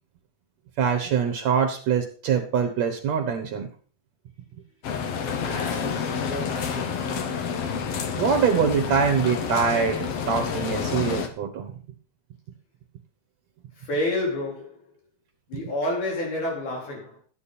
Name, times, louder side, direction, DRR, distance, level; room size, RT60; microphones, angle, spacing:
voice 1, 0.8-3.7 8.2-11.7, right 6 dB, 65° right, 2.3 m, -24 dB
sound 1, 4.8-11.3, left 6 dB, 60° left, 2.0 m, -29 dB
voice 2, 5.3-7.4 13.8-14.9 15.5-17.2, left 1 dB, 80° left, 5.7 m, -30 dB
12.0 x 10.0 x 4.2 m
omnidirectional pair, 3.5 m